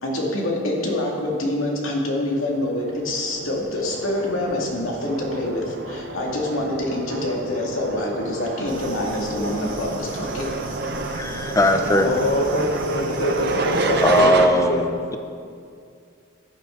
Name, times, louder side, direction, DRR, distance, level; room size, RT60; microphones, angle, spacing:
voice 1, 0.0-10.5, left 1 dB, 90° left, 2.3 m, -26 dB
sound 1, 2.8-14.5, right 3 dB, 55° right, 0.8 m, -29 dB
sound 2, 8.7-14.2, right 2 dB, 75° right, 2.5 m, -38 dB
voice 2, 11.2-12.1 14.0-14.9, left 1 dB, 15° left, 0.6 m, -18 dB
voice 3, 12.0-14.3 14.6-14.8, left 1 dB, 65° left, 1.0 m, -24 dB
14.5 x 10.5 x 3.9 m
head